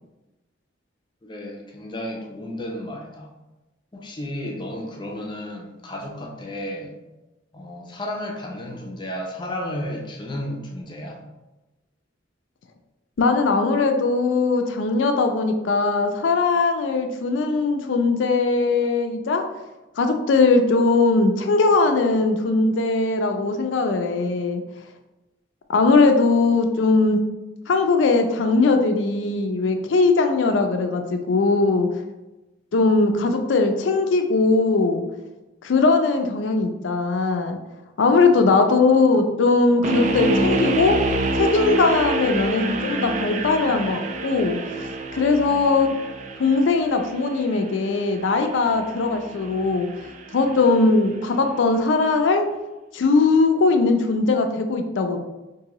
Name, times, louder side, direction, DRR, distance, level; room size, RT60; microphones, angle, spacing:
voice 1, 1.2-3.3 3.9-6.9 7.5-11.2 38.4-38.5, left 1 dB, 25° left, 0 dB, 0.5 m, -33 dB
voice 2, 13.2-19.4 20.0-24.6 25.7-27.2 27.7-31.9 32.7-35.0 35.6-37.6 38.0-41.0 41.3-45.9 46.4-49.9 50.3-52.4 52.9-55.2, left 3 dB, 80° left, 5 dB, 0.4 m, -20 dB
sound 1, 39.8-50.9, right 2 dB, 40° right, 0.3 m, -28 dB
3.7 x 2.6 x 2.9 m, 1.0 s
head